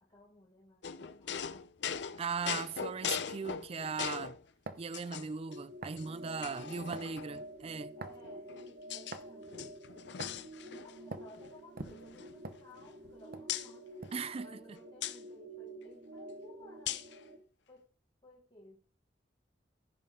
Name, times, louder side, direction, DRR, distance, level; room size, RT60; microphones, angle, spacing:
voice 1, 0.0-1.7 6.2-7.1 8.0-10.1 10.7-14.1 14.4-17.0 17.7-17.9 18.2-19.0, left 1 dB, 30° left, 1.3 m, -58 dB
sound 1, 0.8-4.4 4.9-5.6 6.0-6.1 6.4-7.5 8.2-9.2 9.5-11.0 11.3-11.5 11.8-13.1 13.5-13.7 15.0-15.2 16.9-17.2, left 8 dB, 70° left, 0.6 m, -40 dB
voice 2, 2.2-4.4 4.8-8.0 14.1-14.6, right 5 dB, 35° right, 0.4 m, -38 dB
sound 2, 4.7-4.9 5.8-6.0 6.9-7.1 8.0-8.3 9.1-9.3 10.2-10.5 11.1-11.3 11.8-13.0 13.3-13.5 14.0-14.3, right 3 dB, 55° right, 0.9 m, -44 dB
sound 3, 5.5-17.4, right 1 dB, 75° right, 2.0 m, -49 dB
15.0 x 5.4 x 3.7 m
head